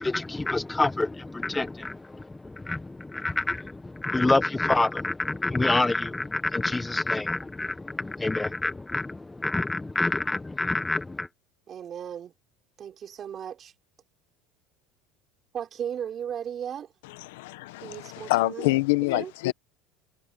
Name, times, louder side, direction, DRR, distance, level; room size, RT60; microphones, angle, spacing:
voice 1, 0.0-11.3, left 2 dB, 10° left, 0.8 m, -27 dB
voice 2, 11.7-12.3 12.8-13.7 15.5-16.9 17.8-18.7 19.1-19.3, right 9 dB, 30° right, 4.3 m, -36 dB
voice 3, 17.2-19.5, left 19 dB, 85° left, 0.9 m, -26 dB
cardioid pair, 145°, 0 cm